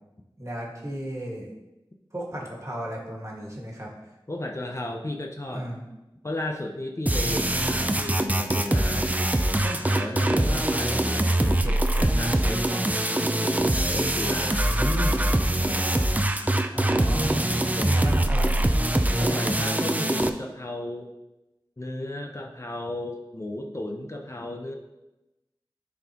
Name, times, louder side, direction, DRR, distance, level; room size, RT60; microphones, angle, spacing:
voice 1, 0.4-1.5 2.1-3.9 5.5-5.9 7.2-7.8 14.6-15.4 16.7-17.5 17.8-18.7 19.1-19.3, equal, 35° right, -3 dB, 1.9 m, -34 dB
voice 2, 4.3-5.7 6.2-9.2 9.6-13.0 13.4-14.7 15.6-16.1 19.2-21.1 21.8-24.8, left 1 dB, 30° left, 1 dB, 0.7 m, -34 dB
sound 1, 7.1-20.3, right 1 dB, 15° right, 0.5 m, -23 dB
10.0 x 4.3 x 3.0 m, 0.99 s
wide cardioid pair, 45°, 9 cm